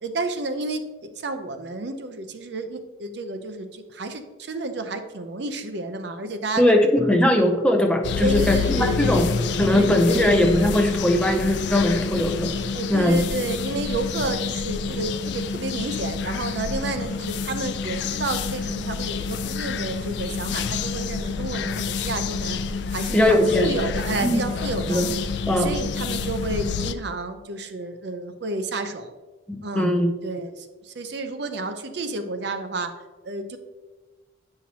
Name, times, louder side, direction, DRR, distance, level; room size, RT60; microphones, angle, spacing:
voice 1, 0.0-6.8 8.2-9.3 9.7-10.5 12.7-22.6 22.9-25.0 25.5-29.1 29.6-30.0 30.2-32.9 33.2-33.6, right 2 dB, 55° right, 7 dB, 0.6 m, -31 dB
voice 2, 6.6-9.3 9.6-12.5 12.9-13.2 23.1-23.7 24.2-24.5 24.9-25.1 25.5-25.7 29.5-30.1, left 1 dB, 5° left, 4 dB, 0.5 m, -20 dB
sound 1, 8.0-26.9, left 5 dB, 60° left, 0.3 m, -28 dB
8.6 x 5.7 x 2.8 m, 1.3 s
head